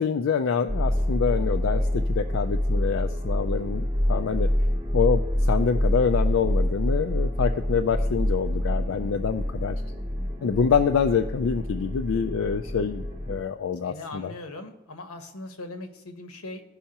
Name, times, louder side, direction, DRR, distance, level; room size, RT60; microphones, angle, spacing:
voice 1, 0.0-4.5 4.9-9.8 10.4-14.3, left 6 dB, 65° left, 6 dB, 0.3 m, -26 dB
sound 1, 0.7-13.4, equal, 15° right, 0.7 m, -26 dB
voice 2, 13.8-16.6, left 2 dB, 85° left, 7 dB, 1.0 m, -39 dB
15.5 x 5.6 x 2.9 m, 0.96 s
head